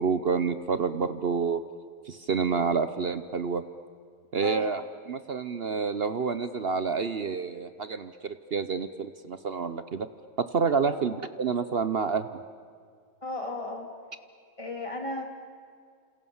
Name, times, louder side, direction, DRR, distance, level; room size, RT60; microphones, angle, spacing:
voice 1, 0.0-1.6 2.1-3.6 4.3-4.8 5.1-10.1 10.4-12.3, right 5 dB, 50° right, 12 dB, 1.0 m, -28 dB
voice 2, 13.2-13.9 14.6-15.2, left 2 dB, 20° left, 2 dB, 3.2 m, -34 dB
28.5 x 28.0 x 7.2 m, 2.1 s
omnidirectional pair, 1.4 m